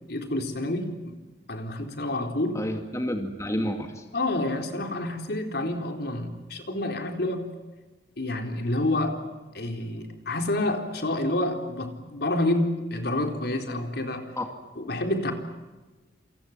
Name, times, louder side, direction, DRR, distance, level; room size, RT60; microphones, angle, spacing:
voice 1, 0.1-1.2 1.5-2.6 4.1-7.5 8.2-9.3 9.5-14.2 14.8-15.3, left 1 dB, 60° left, 4 dB, 4.1 m, -28 dB
voice 2, 2.6-4.0 14.4-14.5, equal, 15° left, 4 dB, 2.2 m, -29 dB
28.5 x 27.0 x 7.4 m, 1.2 s
head